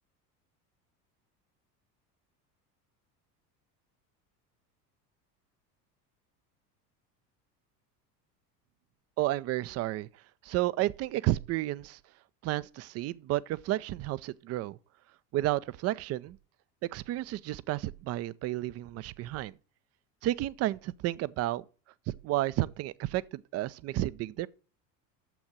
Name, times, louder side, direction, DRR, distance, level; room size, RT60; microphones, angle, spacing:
voice 1, 9.2-10.1 10.4-12.0 12.4-14.8 15.3-16.4 16.8-19.5 20.2-21.6 22.2-24.5, right 15 dB, 35° right, 0.5 m, -31 dB
9.1 x 7.2 x 6.1 m
figure-of-eight pair, 70°, 49 cm